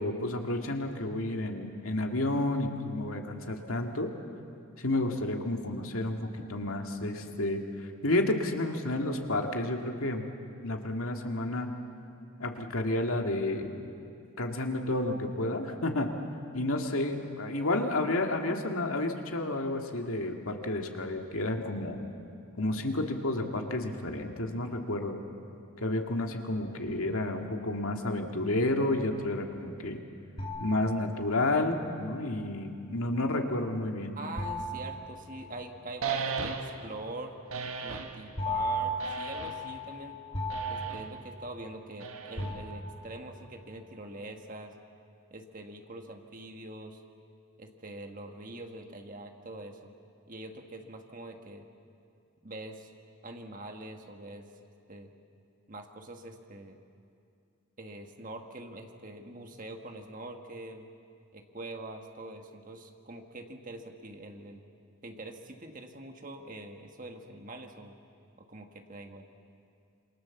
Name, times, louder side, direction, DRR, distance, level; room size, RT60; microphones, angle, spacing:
voice 1, 0.0-4.1 4.8-7.6 8.0-10.2 10.6-11.7 12.4-13.7 14.4-16.1 16.5-22.0 22.6-25.2 25.8-30.0 30.6-34.2, left 2 dB, 80° left, 3 dB, 2.2 m, -31 dB
sound 1, 30.4-31.6 34.4-36.0 38.4-41.9 42.4-43.3, equal, 25° left, 2.9 m, -36 dB
voice 2, 34.1-37.3 37.8-40.2 40.7-44.7 45.3-47.0 47.6-49.9 50.3-51.6 52.4-52.9 53.2-54.4 54.9-55.1 55.7-56.8 57.8-60.9 61.3-64.6 65.0-67.9 68.4-69.3, right 2 dB, 40° right, 4 dB, 1.6 m, -44 dB
sound 2, 36.0-36.9 37.5-38.2 39.0-39.7 40.5-41.1 42.0-42.7, right 5 dB, 80° right, 1.6 m, -36 dB
27.5 x 24.0 x 7.2 m, 2.5 s
head